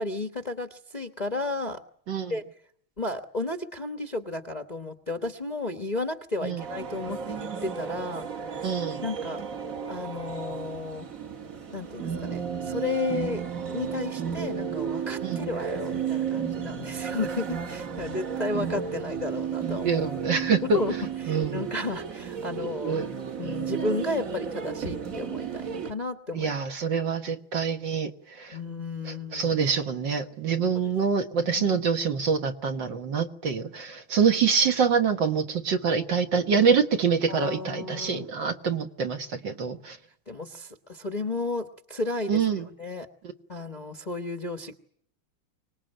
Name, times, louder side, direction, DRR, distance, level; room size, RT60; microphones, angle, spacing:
voice 1, 0.0-1.8 2.3-2.4 3.0-8.7 9.0-9.4 9.8-11.1 11.7-20.1 20.6-20.9 21.2-23.0 23.4-26.5 28.5-29.5 31.4-31.8 37.3-38.3 40.3-43.1 43.5-44.7, left 3 dB, 25° left, 1.0 m, -33 dB
sound 1, 6.6-25.9, right 7 dB, 45° right, 1.7 m, -33 dB
voice 2, 8.6-9.0 15.2-15.4 19.8-20.8 21.3-21.7 22.9-23.1 26.3-28.6 29.0-40.0 42.3-42.7, right 6 dB, 60° right, 2.1 m, -26 dB
25.0 x 19.5 x 9.0 m
omnidirectional pair, 2.3 m